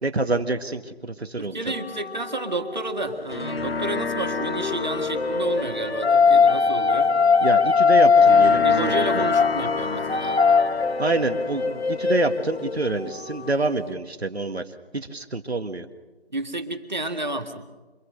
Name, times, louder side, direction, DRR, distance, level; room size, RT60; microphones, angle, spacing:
voice 1, 0.0-1.7 7.4-9.3 11.0-14.6 14.9-15.9, right 2 dB, 80° right, 8 dB, 1.9 m, -27 dB
voice 2, 1.4-7.2 8.6-10.6 16.3-17.7, right 2 dB, 45° right, 5 dB, 1.8 m, -31 dB
sound 1, 1.7-3.2 4.4-13.5, left 5 dB, 85° left, 1.1 m, -21 dB
sound 2, 3.0-13.9, left 4 dB, 65° left, 0.8 m, -32 dB
26.5 x 19.5 x 6.6 m, 1.2 s
figure-of-eight pair, 175°, 32 cm